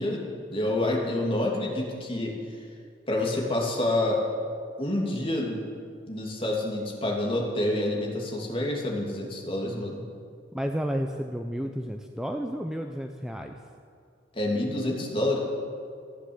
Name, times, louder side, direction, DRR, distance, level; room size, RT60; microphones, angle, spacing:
voice 1, 0.0-2.3 3.1-4.2 4.8-5.6 6.1-10.0 14.3-15.4, left 1 dB, 30° left, -1 dB, 2.8 m, -28 dB
voice 2, 10.5-13.5, equal, 5° right, 4 dB, 0.6 m, -31 dB
15.0 x 10.0 x 8.0 m, 2.4 s
head